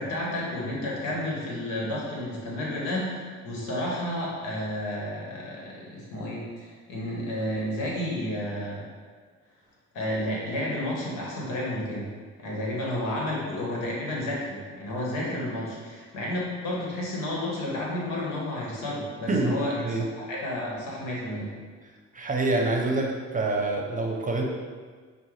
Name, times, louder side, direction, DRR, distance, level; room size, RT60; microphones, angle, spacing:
voice 1, 0.0-8.9 9.9-12.1 12.4-21.5, left 1 dB, 85° left, -4 dB, 1.2 m, -31 dB
voice 2, 19.3-20.1 22.1-24.4, right 2 dB, 25° right, 1 dB, 0.7 m, -26 dB
5.5 x 2.2 x 3.2 m, 1.5 s
supercardioid pair, 70°, 31 cm